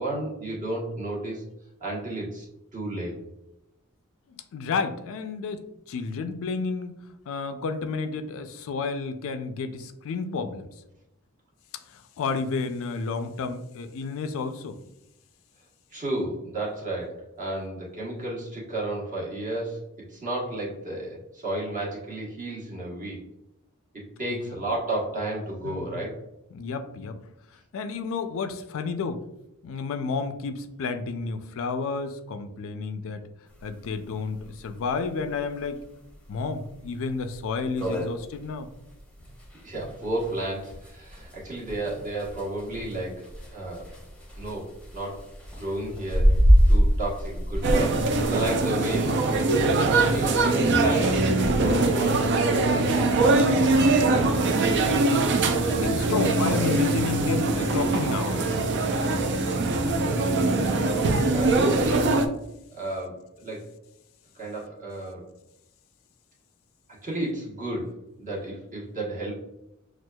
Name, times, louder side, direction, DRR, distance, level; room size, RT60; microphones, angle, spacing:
voice 1, 0.0-1.4 1.8-2.4 2.7-3.1 15.9-19.8 20.1-23.2 24.2-26.2 39.6-43.3 43.5-43.9 44.4-46.4 46.7-49.1 50.1-51.2 51.6-53.4 61.2-62.1 62.7-63.7 64.3-65.3 67.0-69.4, right 1 dB, 35° right, -3 dB, 1.1 m, -32 dB
voice 2, 4.3-5.6 5.9-6.9 7.3-10.7 11.9-14.8 24.5-24.6 25.6-26.1 26.5-27.2 27.5-29.2 29.6-33.2 33.6-35.8 36.3-38.7 54.1-54.8 55.5-58.6, left 4 dB, 65° left, 8 dB, 0.4 m, -31 dB
sound 1, 33.6-33.7 33.9-34.0 34.4-34.5 35.0-35.3 35.8-35.9 36.4-36.5 36.8-36.9 37.3-37.4 37.6-48.6, equal, 5° left, 0.8 m, -25 dB
sound 2, 47.6-62.3, right 2 dB, 55° right, 0.4 m, -22 dB
6.0 x 2.4 x 2.2 m, 0.87 s
head